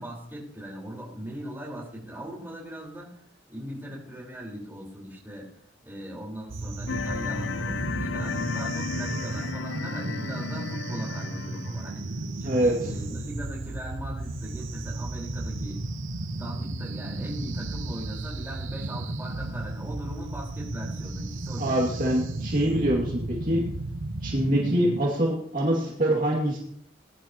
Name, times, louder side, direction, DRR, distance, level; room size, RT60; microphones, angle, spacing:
voice 1, 0.0-3.2 3.5-5.5 5.8-15.8 16.3-22.1, equal, 10° right, -4 dB, 4.5 m, -39 dB
sound 1, 6.5-25.1, right 2 dB, 85° right, 0.9 m, -34 dB
sound 2, 6.9-12.0, left 5 dB, 65° left, 0.5 m, -34 dB
voice 2, 21.6-23.6 24.2-26.6, right 1 dB, 45° right, -3 dB, 2.4 m, -24 dB
20.5 x 11.0 x 3.0 m, 0.67 s
head